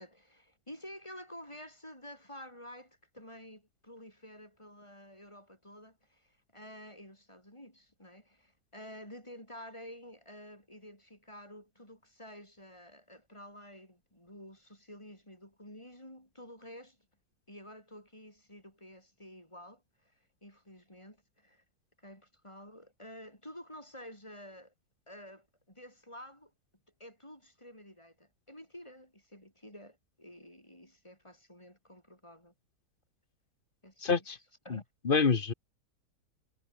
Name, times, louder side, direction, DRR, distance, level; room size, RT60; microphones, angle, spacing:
voice 1, 0.0-17.0 17.5-21.6 22.0-24.7 25.1-26.5 27.0-32.5 33.8-34.2 34.6-34.8, equal, 15° left, 8.0 m, -51 dB
voice 2, 34.0-34.4 34.7-34.8 35.0-35.5, left 5 dB, 35° left, 1.3 m, -27 dB
omnidirectional pair, 1.7 m